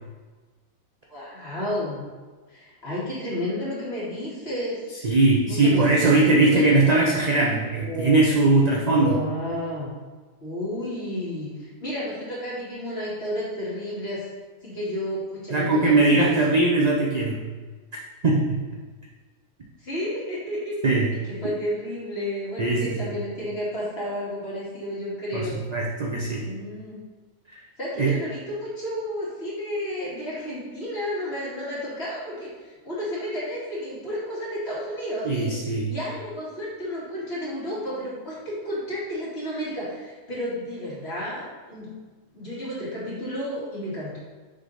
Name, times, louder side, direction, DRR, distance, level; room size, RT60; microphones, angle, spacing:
voice 1, 1.1-2.0 2.5-4.9 5.4-6.8 7.7-8.2 8.9-9.9 10.4-14.3 14.6-16.6 19.8-20.8 21.3-25.6 26.4-27.0 27.8-41.9 42.3-44.2, equal, 45° left, -8 dB, 2.3 m, -32 dB
voice 2, 5.0-9.2 15.5-17.4 18.2-18.6 20.8-21.1 22.6-23.2 25.3-26.5 28.0-28.2 35.2-35.9, right 2 dB, 50° right, -3 dB, 0.5 m, -20 dB
6.5 x 3.8 x 4.1 m, 1.4 s
omnidirectional pair, 1.5 m